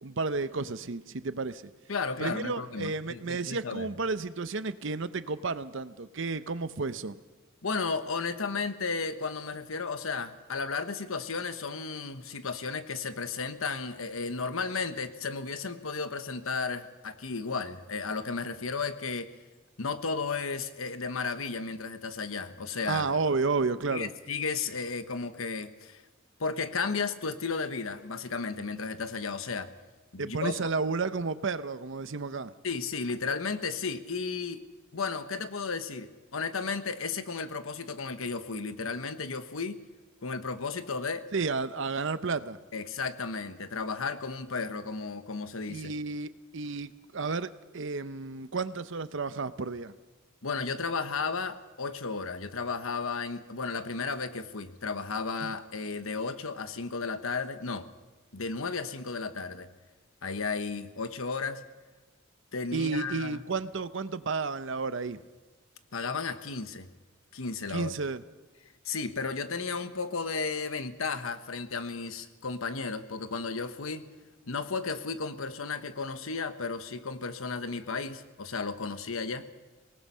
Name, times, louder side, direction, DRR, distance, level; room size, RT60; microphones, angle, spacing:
voice 1, 0.0-1.7 2.2-7.2 22.9-24.1 30.2-32.5 41.3-42.6 45.7-49.9 55.4-55.5 62.7-65.2 67.7-68.2, right 4 dB, 65° right, 14 dB, 0.8 m, -32 dB
voice 2, 1.9-3.9 7.6-19.3 19.8-23.1 23.9-26.0 26.4-29.7 30.1-30.6 32.6-34.6 34.9-39.8 40.2-41.3 42.7-45.9 50.4-57.9 58.3-59.7 60.2-61.6 62.5-63.4 65.9-66.9 67.3-67.9 68.8-74.1 74.5-79.5, left 4 dB, 85° left, 10 dB, 1.2 m, -34 dB
24.0 x 19.0 x 5.6 m, 1.2 s
head